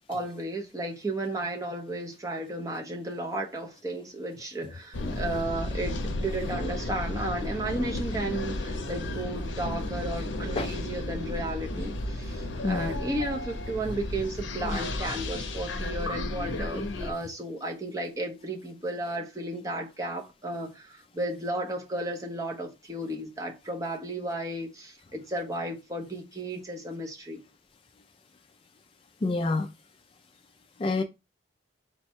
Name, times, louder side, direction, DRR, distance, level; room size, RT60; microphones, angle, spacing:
voice 1, 0.1-27.4, right 1 dB, 20° right, 0.7 m, -34 dB
sound 1, 4.9-17.1, left 2 dB, 80° left, 0.6 m, -33 dB
voice 2, 12.6-13.0 29.2-29.7 30.8-31.0, left 3 dB, 30° left, 0.3 m, -27 dB
4.0 x 2.2 x 4.4 m
head